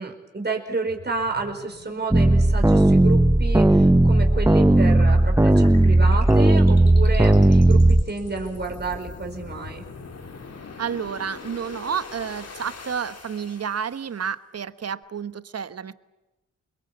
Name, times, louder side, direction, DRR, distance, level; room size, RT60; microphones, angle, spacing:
voice 1, 0.0-9.8, right 3 dB, 35° right, 2 dB, 4.9 m, -30 dB
sound 1, 0.9-14.3, left 4 dB, 60° left, 2.8 m, -42 dB
sound 2, 2.1-8.0, right 1 dB, 10° right, 0.9 m, -16 dB
voice 2, 10.8-15.9, right 7 dB, 55° right, 15 dB, 1.1 m, -30 dB
25.0 x 22.5 x 8.5 m, 1.0 s
supercardioid pair, 40°, 29 cm